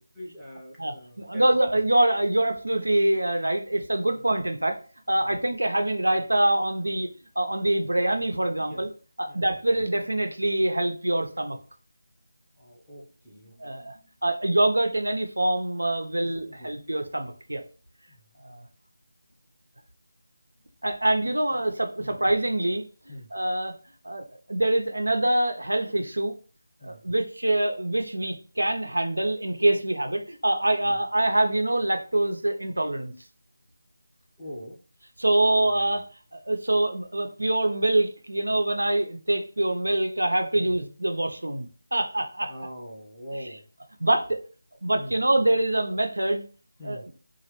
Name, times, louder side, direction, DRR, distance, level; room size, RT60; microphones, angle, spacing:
voice 1, 0.0-1.5 4.1-4.2 5.2-5.3 8.6-8.8 9.3-9.6 12.6-14.1 16.2-16.7 18.1-18.2 22.0-22.2 23.1-23.3 26.8-27.0 30.8-31.0 34.4-34.8 35.7-35.8 40.5-40.7 42.5-43.6 44.8-45.1 46.8-47.1, equal, ahead, -12 dB, 0.7 m, -43 dB
voice 2, 0.8-4.8 5.1-7.1 7.4-8.9 9.2-11.6 13.6-14.0 14.2-17.6 18.4-18.7 20.8-22.8 23.3-23.7 24.0-26.3 26.8-33.1 35.2-36.0 36.3-42.5 43.4-43.6 44.0-44.4 44.8-46.4 46.8-47.0, right 1 dB, 85° right, 5 dB, 0.5 m, -25 dB
3.0 x 2.4 x 3.0 m, 0.39 s
figure-of-eight pair, 165°, 0 cm